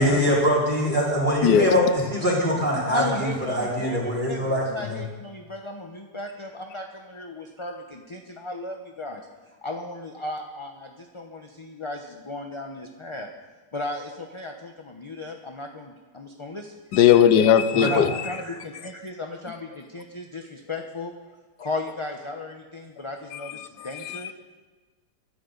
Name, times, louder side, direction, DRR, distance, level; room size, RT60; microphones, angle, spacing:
voice 1, 0.0-5.0 17.8-18.0, equal, 25° right, -5 dB, 4.8 m, -23 dB
voice 2, 1.4-1.9 16.9-18.1 23.5-24.3, left 9 dB, 85° left, 12 dB, 1.3 m, -19 dB
voice 3, 2.9-9.2 9.6-13.3 13.7-16.7 17.8-21.1 21.6-24.3, left 2 dB, 25° left, 3 dB, 0.8 m, -35 dB
24.0 x 13.0 x 4.0 m, 1.3 s
omnidirectional pair, 1.8 m